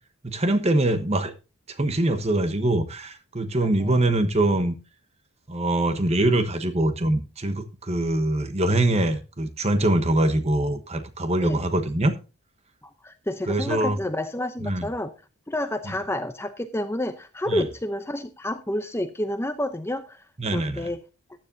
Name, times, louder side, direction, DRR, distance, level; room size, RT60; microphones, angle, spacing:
voice 1, 0.2-1.3 1.8-4.7 5.5-12.1 13.5-14.0 14.6-14.9 15.9-16.0 17.5-17.6 20.4-20.9, right 1 dB, 30° right, 1.1 m, -23 dB
voice 2, 13.0-15.1 15.5-20.2 20.5-21.0, left 1 dB, 10° left, 0.6 m, -29 dB
14.5 x 10.0 x 2.7 m
head